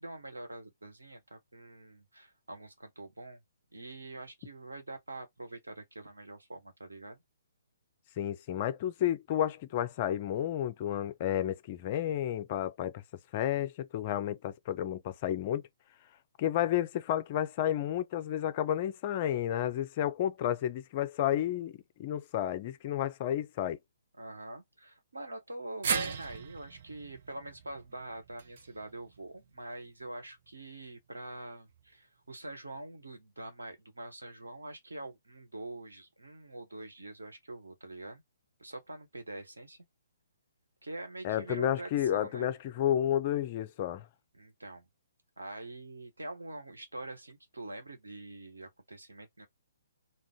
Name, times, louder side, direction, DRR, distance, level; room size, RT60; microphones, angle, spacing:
voice 1, 0.0-3.4 3.7-7.2 24.2-38.2 38.6-39.8 40.8-42.5 44.3-44.9 45.4-49.5, right 2 dB, 80° right, 1.2 m, -45 dB
voice 2, 8.2-13.0 13.3-15.6 16.4-21.7 22.0-23.8 41.2-44.1, left 11 dB, 35° left, 0.5 m, -31 dB
sound 1, 25.8-30.1 30.4-30.5 31.7-31.8, right 6 dB, 50° right, 0.5 m, -38 dB
2.5 x 2.3 x 3.6 m
figure-of-eight pair, 130°, 0 cm